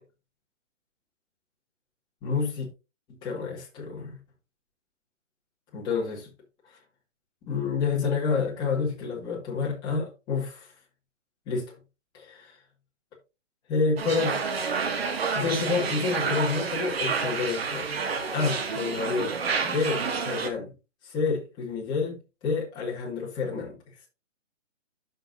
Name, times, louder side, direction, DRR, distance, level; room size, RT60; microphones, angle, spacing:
voice 1, 2.2-2.7 3.2-4.2 5.7-6.3 7.5-10.7 11.5-11.7 12.1-12.5 13.7-14.4 15.3-17.9 18.3-19.3 19.6-20.7 21.0-23.8, left 5 dB, 10° left, 2.0 m, -29 dB
sound 1, 14.0-20.5, right 5 dB, 55° right, 1.4 m, -29 dB
9.7 x 6.7 x 2.7 m
hypercardioid pair, 165°, 37 cm